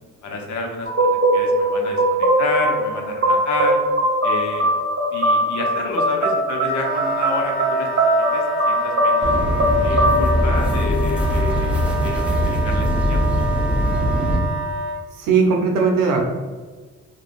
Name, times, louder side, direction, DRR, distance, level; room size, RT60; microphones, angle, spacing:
voice 1, 0.2-3.8 4.2-4.7 5.1-7.9 8.3-9.3 9.8-13.6, left 3 dB, 60° left, 1 dB, 0.7 m, -30 dB
sound 1, 0.9-11.5, right 1 dB, 35° right, 0.9 m, -20 dB
Wind instrument woodwind instrument, 6.6-15.0, right 4 dB, 45° left, 1.2 m, -28 dB
sound 2, 9.2-14.4, left 1 dB, 5° right, 0.6 m, -21 dB
voice 2, 15.2-16.3, right 5 dB, 75° right, 1 dB, 0.7 m, -18 dB
3.5 x 2.1 x 2.4 m, 1.4 s
supercardioid pair, 60°, 33 cm